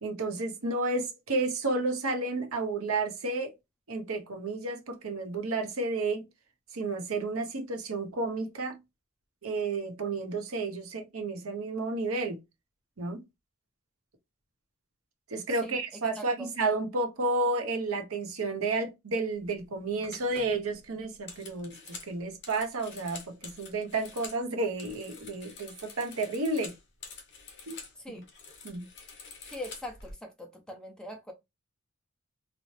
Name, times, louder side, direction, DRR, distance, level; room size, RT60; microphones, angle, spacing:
voice 1, 0.0-3.5 3.9-6.2 6.7-8.8 9.4-12.4 13.0-13.2 15.3-26.7 27.7-27.8 28.1-28.2 28.6-28.9, right 3 dB, 70° right, 0.8 m, -31 dB
voice 2, 15.6-16.5 28.0-28.2 29.5-31.3, left 1 dB, 5° left, 0.7 m, -42 dB
sound 1, 19.4-19.6 20.0-24.4 24.7-28.0 28.2-30.1, left 5 dB, 55° left, 1.0 m, -47 dB
4.0 x 2.0 x 3.2 m
head